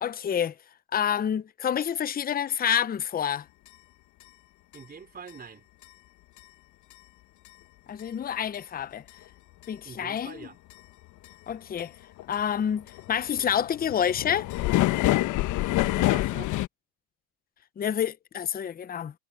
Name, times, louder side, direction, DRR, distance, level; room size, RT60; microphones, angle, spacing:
voice 1, 0.0-0.5 0.9-3.4 7.9-9.0 9.7-10.5 11.5-11.9 12.3-14.5 17.8-19.1, left 9 dB, 20° left, 0.9 m, -28 dB
sound 1, 3.7-3.8 4.2-4.3 4.7-4.8 5.3-5.4 5.8-5.9 6.4-6.5 6.9-7.0 7.5-7.6 8.0-8.1 8.5-8.6 9.1-9.2 9.6-9.7 10.2-10.3 10.7-10.8 11.2-11.5 11.8-11.9 12.2-16.7, left 16 dB, 45° left, 1.3 m, -27 dB
voice 2, 4.7-5.7 9.8-10.6 15.8-16.5, right 6 dB, 20° right, 3.7 m, -44 dB
hypercardioid pair, 100°, 42 cm